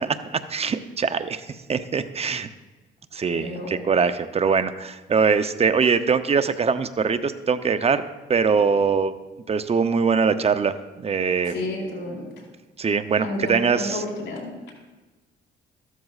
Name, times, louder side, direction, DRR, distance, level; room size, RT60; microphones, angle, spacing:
voice 1, 0.3-2.5 3.1-8.0 8.3-9.1 9.5-11.5 12.8-14.0, right 5 dB, 30° right, 11 dB, 0.6 m, -22 dB
voice 2, 3.3-3.7 11.4-12.3 13.2-14.5, left 2 dB, 70° left, -3 dB, 4.2 m, -31 dB
13.5 x 13.0 x 2.4 m, 1.2 s
cardioid pair, 90°, 20 cm